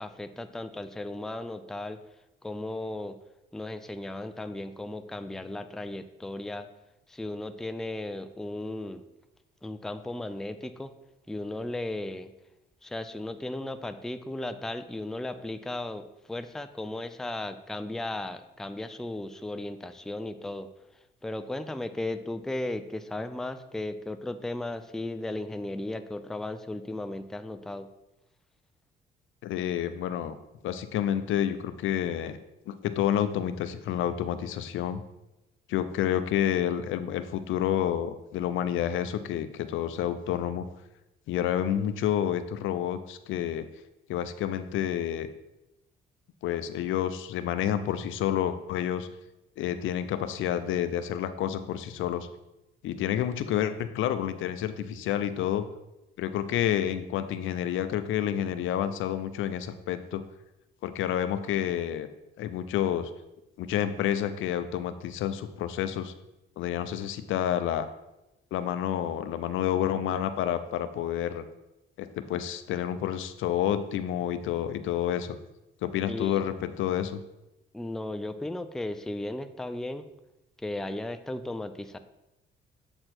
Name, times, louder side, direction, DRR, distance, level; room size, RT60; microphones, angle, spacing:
voice 1, 0.0-2.0 2.4-3.2 3.5-6.7 7.1-9.0 9.6-10.9 11.3-12.3 12.8-20.7 21.2-27.9 76.1-76.4 77.7-80.1 80.6-82.0, left 1 dB, ahead, 9 dB, 0.4 m, -35 dB
voice 2, 29.4-30.4 30.6-32.4 32.7-35.0 35.7-40.7 41.3-43.7 44.1-45.3 46.4-49.1 49.6-52.3 52.8-55.7 56.2-60.2 60.8-62.1 62.4-63.1 63.6-66.1 66.6-67.9 68.5-71.4 72.0-75.4 75.8-77.2, left 10 dB, 80° left, 11 dB, 0.5 m, -29 dB
7.7 x 4.4 x 4.3 m, 0.94 s
cardioid pair, 90°, 20 cm